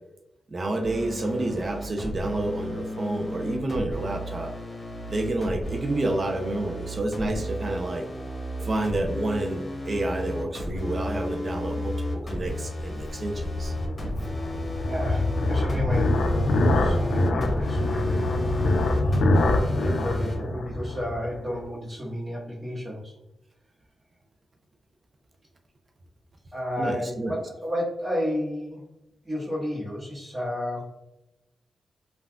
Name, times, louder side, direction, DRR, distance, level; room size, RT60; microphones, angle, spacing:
voice 1, 0.5-4.5 5.1-8.0 8.6-13.7 26.8-27.4, right 2 dB, 50° right, 4 dB, 0.5 m, -29 dB
sound 1, 0.8-20.4, left 1 dB, 40° left, 1.0 m, -33 dB
sound 2, 12.0-21.6, left 1 dB, 80° left, 0.3 m, -25 dB
voice 2, 14.9-18.2 19.4-23.1 26.5-28.8 29.2-30.9, equal, 25° right, -8 dB, 1.4 m, -31 dB
3.3 x 2.4 x 2.3 m, 0.91 s
supercardioid pair, 40°, 0 cm